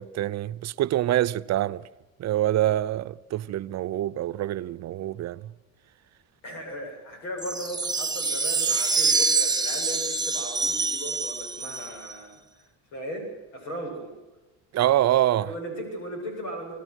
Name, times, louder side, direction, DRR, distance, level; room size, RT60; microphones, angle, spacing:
voice 1, 0.0-1.8 2.2-5.5 14.7-15.5, right 13 dB, 45° right, 0.8 m, -25 dB
voice 2, 6.4-12.6 12.9-14.1 15.4-16.7, equal, 85° left, 8.0 m, -37 dB
sound 1, 7.4-12.1, right 4 dB, 10° right, 1.4 m, -26 dB
26.5 x 19.0 x 6.4 m
supercardioid pair, 85°, 36 cm